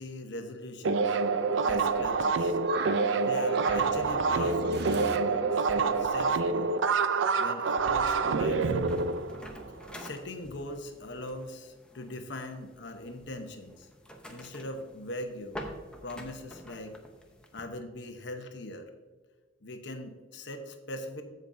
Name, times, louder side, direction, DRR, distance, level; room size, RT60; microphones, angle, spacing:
voice 1, 0.0-1.2 1.6-2.6 3.1-4.9 5.2-6.7 7.4-9.0 10.0-13.9 14.3-15.6 16.0-17.0 17.5-18.9 19.6-21.2, left 1 dB, 65° left, 1.0 m, -40 dB
sound 1, 0.8-10.0, right 4 dB, 85° right, 0.5 m, -27 dB
voice 2, 1.2-1.7 2.5-5.2, right 4 dB, 60° right, 0.8 m, -37 dB
sound 2, 8.4-17.6, equal, 5° left, 0.9 m, -48 dB
15.0 x 5.3 x 2.7 m
head